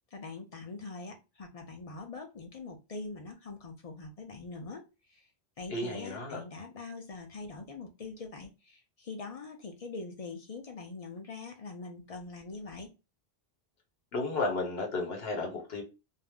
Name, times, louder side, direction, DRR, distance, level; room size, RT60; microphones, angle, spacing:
voice 1, 0.1-5.3 5.6-12.9, left 3 dB, 45° left, 0.5 m, -43 dB
voice 2, 5.7-6.4 14.1-15.8, left 3 dB, 75° left, 1.1 m, -33 dB
2.5 x 2.0 x 3.4 m
omnidirectional pair, 1.0 m